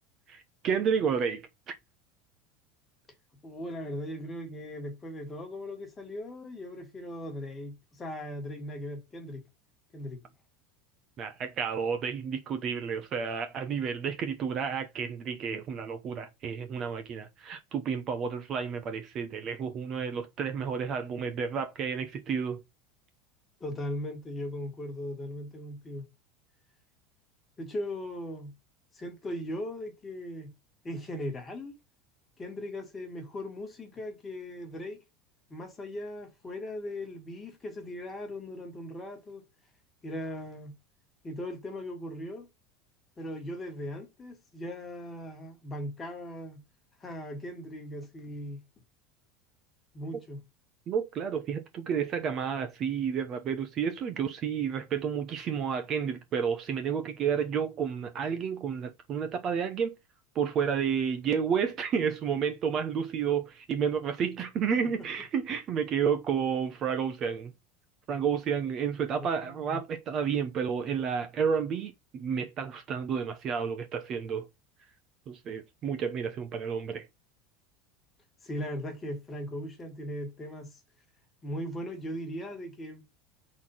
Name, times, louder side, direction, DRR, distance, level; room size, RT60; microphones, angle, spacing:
voice 1, 0.3-1.7 11.2-22.6 50.9-59.9 60.3-67.5 68.1-74.5 75.3-77.1, right 7 dB, 30° right, 0.9 m, -31 dB
voice 2, 3.4-9.4 9.9-10.2 23.6-26.0 27.6-28.5 28.9-30.5 30.8-31.7 32.4-35.0 35.5-39.4 40.0-40.8 41.2-42.5 43.2-46.6 47.0-48.6 49.9-50.4 69.2-69.8 78.4-80.8 81.4-83.0, left 1 dB, 15° left, 1.9 m, -38 dB
7.0 x 4.2 x 5.7 m
supercardioid pair, 170°, 0 cm